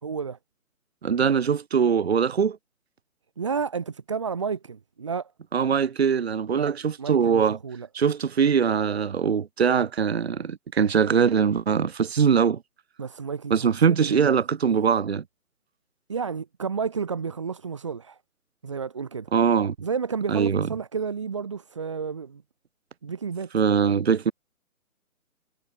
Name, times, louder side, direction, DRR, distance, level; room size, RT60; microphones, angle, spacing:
voice 1, 0.0-0.4 3.4-5.3 6.5-6.7 7.0-7.9 13.0-14.3 16.1-18.2 18.6-19.3 19.8-22.4 23.0-23.5, right 6 dB, 20° right, 1.0 m, -31 dB
voice 2, 1.0-2.6 5.5-7.6 7.9-12.6 13.5-15.2 19.3-19.7 20.3-20.7 23.5-24.3, right 7 dB, 45° right, 1.4 m, -22 dB
hypercardioid pair, 170°, 44 cm